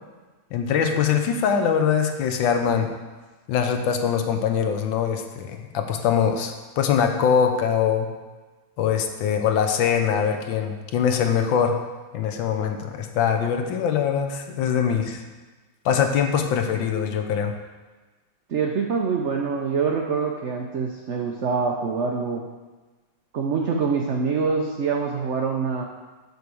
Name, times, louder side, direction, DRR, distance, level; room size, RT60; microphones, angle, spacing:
voice 1, 0.5-2.9 3.5-8.1 8.8-11.8 12.1-15.2 15.8-17.5, left 7 dB, 80° left, 5 dB, 1.5 m, -23 dB
voice 2, 18.5-22.4 23.3-25.8, right 5 dB, 90° right, 1 dB, 0.6 m, -25 dB
6.7 x 4.7 x 6.8 m, 1.3 s
omnidirectional pair, 2.1 m